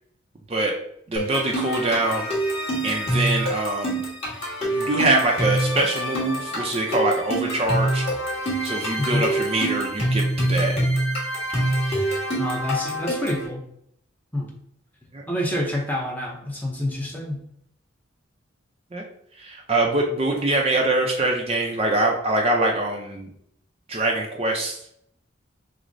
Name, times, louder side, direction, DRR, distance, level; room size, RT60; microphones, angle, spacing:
voice 1, 1.1-2.3 2.8-4.0 4.7-8.1 8.6-10.7 15.1-15.2 18.9-19.0 19.4-23.3 23.9-24.8, right 2 dB, 30° right, 0 dB, 0.4 m, -24 dB
sound 1, 1.2-13.5, right 1 dB, 30° left, 1.3 m, -26 dB
voice 2, 12.4-13.6 14.3-14.5 15.3-17.4, left 1 dB, 10° left, -1 dB, 0.6 m, -27 dB
6.1 x 2.0 x 2.6 m, 0.70 s
head